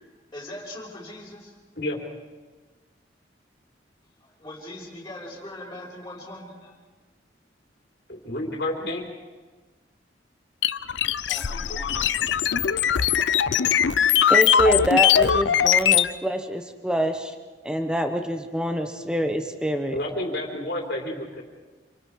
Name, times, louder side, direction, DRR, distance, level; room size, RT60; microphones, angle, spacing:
voice 1, 0.3-1.5 4.2-6.7 11.3-12.8, left 1 dB, 15° left, -6 dB, 5.6 m, -41 dB
voice 2, 8.1-9.1 19.9-21.4, left 1 dB, 60° left, -1 dB, 3.6 m, -30 dB
sound 1, 10.6-16.1, left 8 dB, 80° left, 0.6 m, -20 dB
voice 3, 14.3-17.3 17.6-19.9, equal, 5° right, 6 dB, 1.1 m, -25 dB
27.5 x 25.5 x 4.8 m, 1.3 s
head